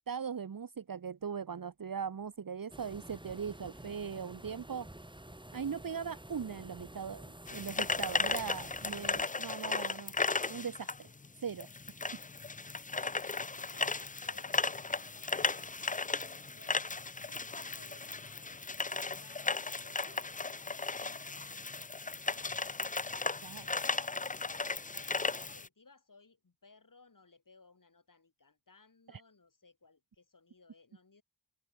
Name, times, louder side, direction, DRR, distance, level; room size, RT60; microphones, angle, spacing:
voice 1, 0.0-4.9 5.5-10.1 10.5-11.1 11.4-11.7 23.4-23.6 29.1-29.2, right 6 dB, 55° right, 1.1 m, -40 dB
sound 1, 2.7-9.2, right 1 dB, 10° right, 3.4 m, -50 dB
sound 2, 7.5-25.7, left 3 dB, 20° left, 0.6 m, -36 dB
voice 2, 13.1-16.8 17.3-23.0 23.5-24.2 24.9-31.2, left 4 dB, 50° left, 4.9 m, -62 dB
wide cardioid pair, 70°, 42 cm